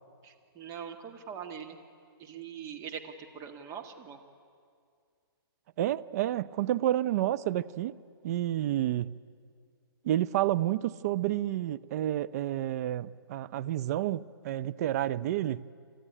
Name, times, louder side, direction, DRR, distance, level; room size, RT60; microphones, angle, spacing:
voice 1, 0.2-1.8 2.2-4.2, right 7 dB, 25° right, 1.9 m, -42 dB
voice 2, 5.8-7.9 8.2-9.1 10.0-15.6, right 13 dB, 40° right, 0.6 m, -30 dB
28.5 x 13.5 x 10.0 m
hypercardioid pair, 135°, 13 cm